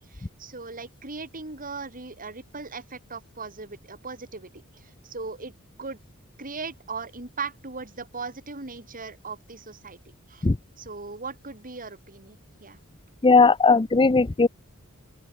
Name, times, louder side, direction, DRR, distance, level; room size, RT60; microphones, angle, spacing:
voice 1, 0.1-5.5 5.8-6.0 6.4-10.0 10.3-10.5 10.8-12.8, right 4 dB, 40° right, 3.9 m, -38 dB
voice 2, 13.2-14.5, left 4 dB, 25° left, 0.6 m, -17 dB
open air
head